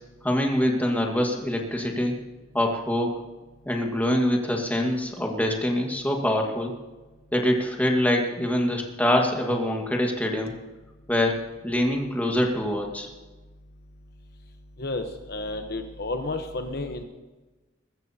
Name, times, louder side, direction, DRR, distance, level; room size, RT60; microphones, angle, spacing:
voice 1, 0.2-2.1 2.5-3.2 3.6-6.7 7.3-10.6 11.1-13.1, left 1 dB, 10° left, 1 dB, 1.6 m, -24 dB
voice 2, 14.8-17.0, left 2 dB, 55° left, 6 dB, 0.9 m, -31 dB
21.5 x 14.0 x 2.8 m, 1.2 s
head